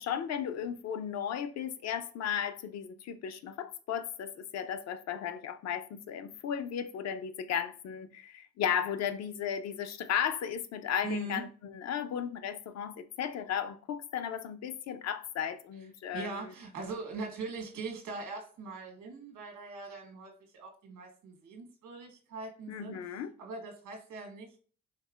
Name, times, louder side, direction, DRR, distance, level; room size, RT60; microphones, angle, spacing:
voice 1, 0.0-16.3 22.7-23.3, left 8 dB, 60° left, 0.5 m, -35 dB
voice 2, 11.0-11.4 16.1-23.0 23.4-24.6, right 3 dB, 85° right, 1.3 m, -41 dB
4.5 x 3.3 x 2.4 m
cardioid pair, 90°, 30 cm